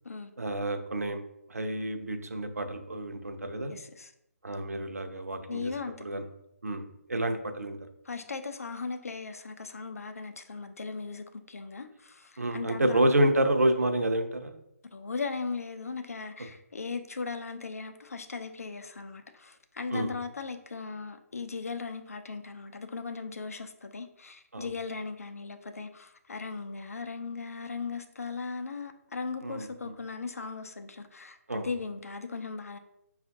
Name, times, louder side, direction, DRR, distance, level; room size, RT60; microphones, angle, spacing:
voice 1, 0.4-1.2 1.5-3.7 4.4-5.7 6.0-6.2 6.6-6.8 7.1-7.8 12.4-14.6 19.9-20.1 24.5-24.7 29.4-29.7 31.5-31.7, right 1 dB, 65° right, 0.6 m, -28 dB
voice 2, 3.7-4.1 5.5-6.0 8.0-13.1 14.9-32.8, left 4 dB, 60° left, 0.5 m, -38 dB
5.5 x 2.4 x 2.7 m
figure-of-eight pair, 145°, 9 cm